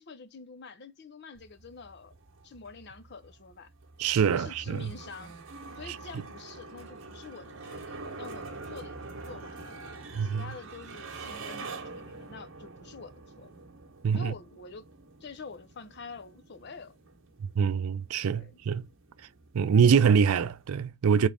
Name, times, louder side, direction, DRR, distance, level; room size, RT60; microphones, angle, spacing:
voice 1, 0.0-2.1 2.4-3.7 4.2-5.3 5.8-13.5 14.1-14.9 15.2-17.0 18.3-18.6, left 4 dB, 50° left, 0.5 m, -47 dB
sound 1, 1.3-20.7, right 3 dB, 60° right, 0.9 m, -46 dB
voice 2, 4.0-4.9 5.9-6.0 10.1-10.5 14.0-14.3 17.6-18.9 19.5-21.3, right 6 dB, 85° right, 0.4 m, -24 dB
3.7 x 3.2 x 3.3 m
head